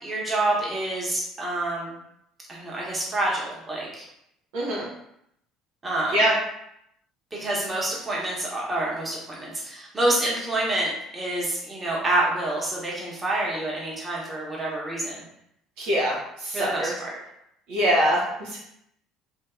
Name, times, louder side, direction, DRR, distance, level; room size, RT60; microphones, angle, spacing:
voice 1, 0.0-1.9 2.5-4.0 5.8-6.2 7.3-15.2 16.5-17.1, right 1 dB, 25° right, -4 dB, 1.1 m, -27 dB
voice 2, 4.5-4.9 6.1-6.3 15.8-16.1 16.4-16.9 17.7-18.2, equal, 70° right, -4 dB, 0.7 m, -22 dB
2.7 x 2.7 x 2.3 m, 0.78 s
hypercardioid pair, 60°, 0 cm